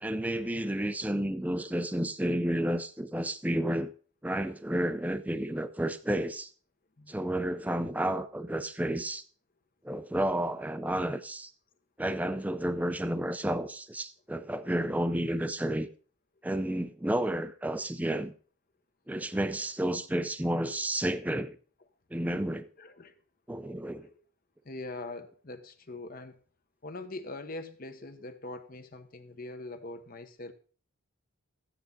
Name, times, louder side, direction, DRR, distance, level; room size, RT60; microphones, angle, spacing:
voice 1, 0.0-3.9 4.2-6.5 7.1-9.2 9.8-11.5 12.0-15.9 16.4-18.3 19.1-21.6 22.1-22.7 23.5-24.1, right 1 dB, 5° right, 0.4 m, -31 dB
voice 2, 7.0-7.3 22.8-23.2 23.6-24.2 24.6-26.4 26.8-30.5, left 2 dB, 40° left, 1.0 m, -43 dB
13.5 x 9.3 x 3.9 m
head